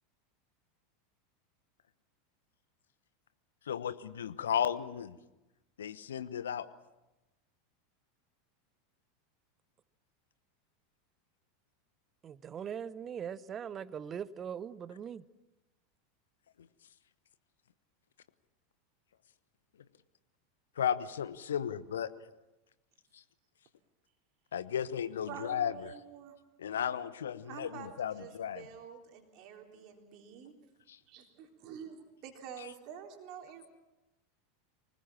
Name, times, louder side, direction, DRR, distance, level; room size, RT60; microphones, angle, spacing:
voice 1, 3.7-5.2 5.8-6.7 20.8-22.1 23.1-23.2 24.5-25.7 26.6-28.6, left 9 dB, 70° left, 1.1 m, -34 dB
voice 2, 12.2-15.3, right 8 dB, 30° right, 0.7 m, -41 dB
voice 3, 25.3-26.4 27.5-30.5 31.1-33.7, right 8 dB, 45° right, 3.7 m, -48 dB
24.5 x 20.0 x 7.4 m
figure-of-eight pair, 85°, 0 cm